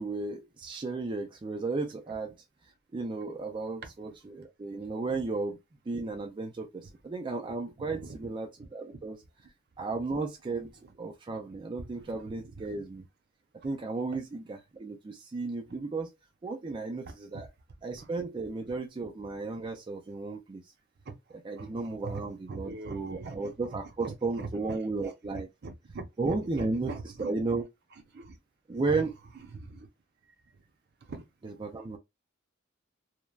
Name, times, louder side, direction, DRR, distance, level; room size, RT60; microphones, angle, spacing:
voice 1, 0.0-2.4 2.9-5.6 5.9-9.2 9.8-10.7 11.0-13.1 13.6-16.1 16.4-17.5 17.8-20.6 21.4-25.5 26.2-26.9 27.2-27.6 28.7-29.1 31.4-32.0, right 3 dB, 25° right, 0.3 m, -34 dB
voice 2, 7.8-8.3 8.6-8.7 10.6-10.9 11.9-12.7 17.0-17.4 18.0-18.1 18.4-18.5 21.1-21.2 21.5-27.4 27.9-28.4 28.7-29.1 29.3-29.9 31.0-31.2, right 3 dB, 55° right, 0.7 m, -43 dB
3.1 x 2.2 x 2.3 m
head